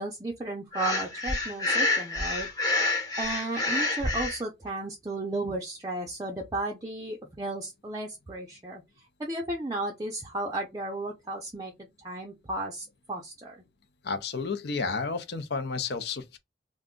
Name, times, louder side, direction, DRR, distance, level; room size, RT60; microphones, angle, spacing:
voice 1, 0.0-2.9 3.2-11.7 12.0-13.5, right 2 dB, 20° right, 0.5 m, -34 dB
Breathing, 0.7-4.4, left 2 dB, 20° left, 0.8 m, -28 dB
voice 2, 14.0-16.4, left 4 dB, 65° left, 0.5 m, -31 dB
2.5 x 2.2 x 3.6 m
head